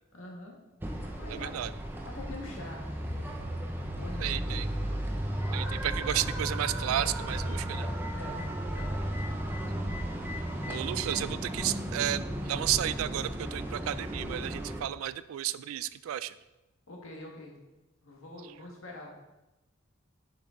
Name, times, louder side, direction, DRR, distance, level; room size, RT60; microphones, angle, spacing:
voice 1, 0.1-0.6 1.1-1.6 2.0-3.1 3.9-4.7 8.1-9.2 16.9-17.6 18.0-19.1, left 2 dB, 80° left, -1 dB, 1.7 m, -45 dB
sound 1, 0.8-14.8, equal, 10° right, 0.6 m, -34 dB
voice 2, 1.3-1.7 4.2-4.7 5.4-7.9 10.7-16.3, right 12 dB, 85° right, 17 dB, 0.3 m, -32 dB
7.1 x 6.1 x 3.8 m, 1.0 s
head